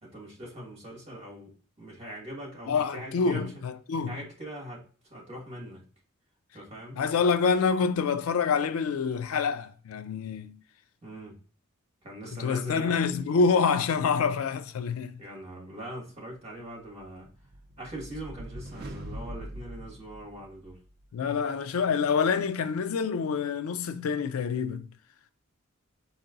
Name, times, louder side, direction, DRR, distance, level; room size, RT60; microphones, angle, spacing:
voice 1, 0.0-3.6 4.1-4.8 5.1-5.8 6.5-7.0 11.0-11.4 12.0-13.0 15.2-17.3 17.8-20.8, right 1 dB, 30° right, 1.7 m, -42 dB
voice 2, 2.7-4.2 7.0-10.6 12.4-15.2 21.1-24.9, left 5 dB, 85° left, 0.4 m, -27 dB
sound 1, 17.0-20.9, equal, 50° right, 0.6 m, -42 dB
4.5 x 2.9 x 3.8 m
head